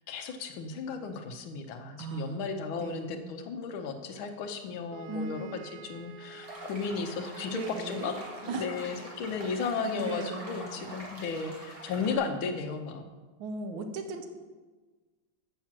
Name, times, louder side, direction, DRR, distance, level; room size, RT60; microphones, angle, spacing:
voice 1, 0.0-8.1 8.4-13.1, left 5 dB, 85° left, 6 dB, 1.6 m, -35 dB
voice 2, 2.0-3.4 5.1-5.3 7.5-8.2 8.5-8.7 9.9-11.0 13.4-14.3, right 3 dB, 80° right, 6 dB, 1.5 m, -38 dB
sound 1, 4.9-9.3, right 5 dB, 65° right, 1.1 m, -50 dB
sound 2, 6.4-12.2, right 1 dB, 20° right, 1.7 m, -44 dB
6.5 x 5.9 x 7.3 m, 1.3 s
omnidirectional pair, 2.2 m